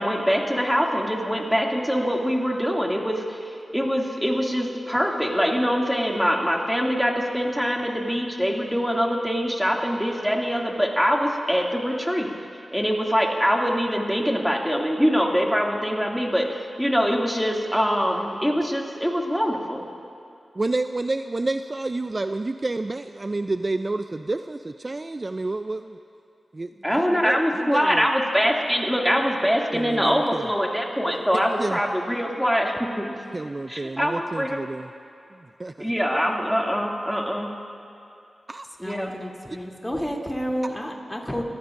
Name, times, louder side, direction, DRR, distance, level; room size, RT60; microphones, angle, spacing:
voice 1, 0.0-12.3 12.7-19.8 26.8-33.1 33.7-34.6 35.8-37.5 38.8-39.1, equal, ahead, -1 dB, 2.4 m, -24 dB
voice 2, 20.6-26.0 26.5-28.1 29.7-30.5 31.6-31.8 33.3-34.9 35.3-35.9 38.5-39.1, right 2 dB, 40° right, 9 dB, 0.4 m, -30 dB
voice 3, 38.8-41.4, equal, 15° left, -1 dB, 2.9 m, -30 dB
28.0 x 15.0 x 2.6 m, 2.6 s
cardioid pair, 40°, 0 cm